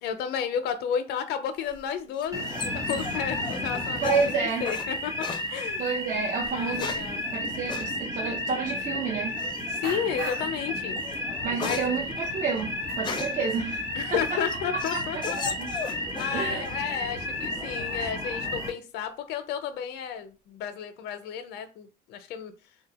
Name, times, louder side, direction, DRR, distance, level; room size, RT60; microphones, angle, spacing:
voice 1, 0.0-4.1 4.6-5.1 5.5-5.9 6.5-7.3 9.7-11.0 11.6-11.8 13.9-15.5 15.8-22.5, left 8 dB, 80° left, 0.5 m, -32 dB
sound 1, 1.6-4.9 5.2-5.5 6.4-7.2 7.7-7.9 9.4-9.8 10.3-10.5 10.9-13.5 14.0-16.4 16.6-17.3, left 4 dB, 25° left, 0.4 m, -36 dB
sound 2, 2.3-18.7, left 1 dB, 20° right, 0.9 m, -32 dB
voice 2, 4.0-4.7 5.8-7.0 7.3-9.3 11.4-14.2 14.7-15.7 16.3-16.7, right 5 dB, 50° right, 0.6 m, -30 dB
sound 3, 8.2-8.3 8.8-9.3 9.8-10.7 11.1-11.5 11.8-11.9 12.3-13.7 14.0-14.3, right 5 dB, 80° right, 1.2 m, -42 dB
2.4 x 2.2 x 3.9 m
cardioid pair, 110°, 17 cm